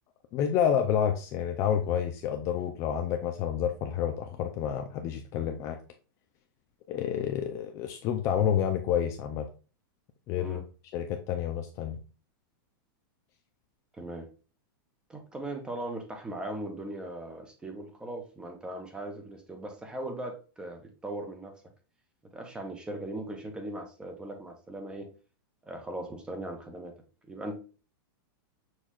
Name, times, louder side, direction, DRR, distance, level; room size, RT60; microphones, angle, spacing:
voice 1, 0.3-5.8 6.9-9.4 10.3-10.6 10.9-12.0, left 9 dB, 25° left, 5 dB, 0.3 m, -29 dB
voice 2, 13.9-14.3 15.1-21.6 22.3-25.1 25.6-26.9 27.3-27.6, right 1 dB, 5° right, 4 dB, 0.7 m, -39 dB
6.3 x 2.3 x 3.6 m, 0.35 s
supercardioid pair, 165°, 12 cm